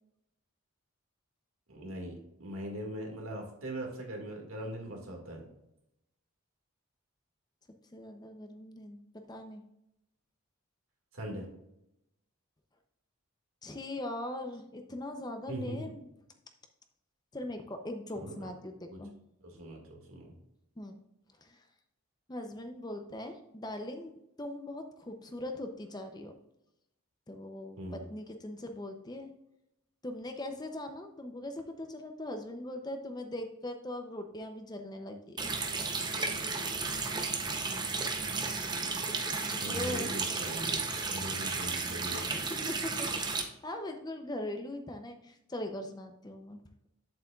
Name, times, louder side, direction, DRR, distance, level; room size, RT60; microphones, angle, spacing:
voice 1, 1.7-5.4 11.1-11.5 15.5-15.9 18.2-18.5 18.9-19.0 19.4-20.3 27.8-28.0 39.5-42.2, right 1 dB, 70° right, 1 dB, 2.1 m, -41 dB
voice 2, 7.9-9.0 9.3-9.6 13.6-16.0 17.3-18.7 19.0-19.1 20.8-21.0 21.4-21.6 22.3-26.3 27.3-29.3 30.0-35.5 39.4-40.1 42.3-46.6, left 1 dB, 20° left, 6 dB, 0.6 m, -40 dB
Water tap faucet, 35.4-43.4, right 4 dB, 20° right, 0.7 m, -33 dB
8.2 x 7.5 x 2.4 m, 0.83 s
head